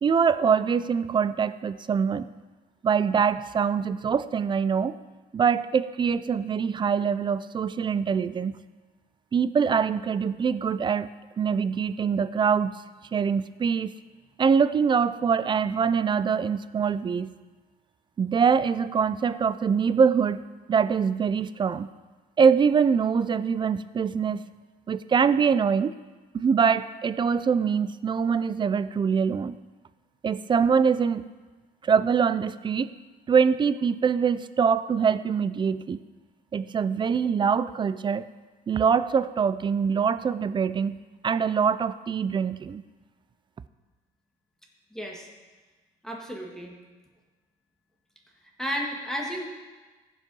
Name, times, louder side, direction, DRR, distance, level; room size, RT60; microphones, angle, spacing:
voice 1, 0.0-2.3 2.8-4.9 5.3-8.5 9.3-11.1 11.4-12.8 13.1-13.9 14.4-17.3 18.2-20.4 20.7-21.9 22.4-24.4 24.9-25.9 26.3-29.6 30.2-31.3 31.8-32.9 33.3-36.0 36.5-38.2 38.7-41.0 41.2-42.8, right 6 dB, 30° right, 15 dB, 0.4 m, -24 dB
voice 2, 44.9-45.3 46.0-46.7 48.6-49.4, equal, 5° left, -1 dB, 1.6 m, -32 dB
14.5 x 5.5 x 5.3 m, 1.3 s
cardioid pair, 110°, 17 cm